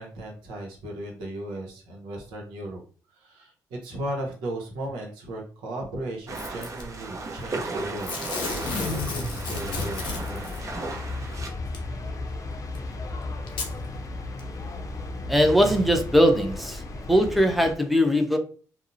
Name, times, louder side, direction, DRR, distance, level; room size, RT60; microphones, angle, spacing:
voice 1, 0.0-2.8 3.1-10.5, right 1 dB, 90° right, 0 dB, 0.7 m, -36 dB
Packing tape duct tape / Tearing, 6.3-6.8 8.0-10.6 11.7-11.8 12.7-12.8 13.5-13.7 14.4-14.5, left 4 dB, 85° left, 0.6 m, -32 dB
sound 1, 6.3-11.5, right 3 dB, 45° right, 0.6 m, -35 dB
sound 2, 8.5-17.8, left 2 dB, 45° left, 0.6 m, -35 dB
voice 2, 15.3-16.8 17.1-18.4, equal, ahead, 4 dB, 0.6 m, -20 dB
2.7 x 2.0 x 2.5 m, 0.39 s
supercardioid pair, 55°, 8 cm